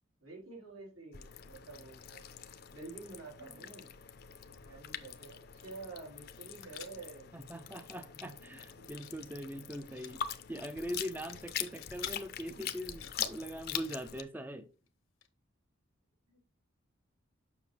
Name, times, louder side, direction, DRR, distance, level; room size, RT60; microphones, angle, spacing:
voice 1, 0.2-2.2 2.7-3.9 4.6-7.3 8.4-8.9 16.3-16.4, right 3 dB, 85° right, -2 dB, 3.8 m, -49 dB
sound 1, 1.1-14.2, left 9 dB, 45° left, 0.6 m, -43 dB
sound 2, 5.9-7.0 7.5-7.6 7.8-8.1 8.5-9.2 9.4-10.1 10.9-12.2 12.7-14.0 14.9-15.0 15.2-15.3, left 11 dB, 80° left, 0.9 m, -50 dB
voice 2, 7.3-14.7, equal, 10° right, 9 dB, 0.4 m, -42 dB
7.2 x 5.9 x 3.3 m, 0.34 s
head